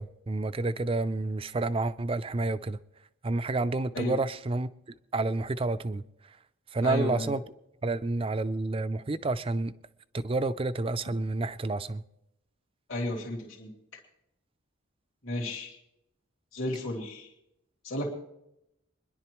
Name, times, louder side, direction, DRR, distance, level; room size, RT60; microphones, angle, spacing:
voice 1, 0.0-2.8 3.2-4.7 5.1-6.0 6.7-7.4 7.8-9.7 10.2-12.0, right 2 dB, 25° right, 0.4 m, -29 dB
voice 2, 6.8-7.3 12.9-13.7 15.2-15.8 16.5-17.3 17.8-18.1, left 1 dB, 70° left, 2.6 m, -32 dB
25.5 x 11.0 x 3.1 m
head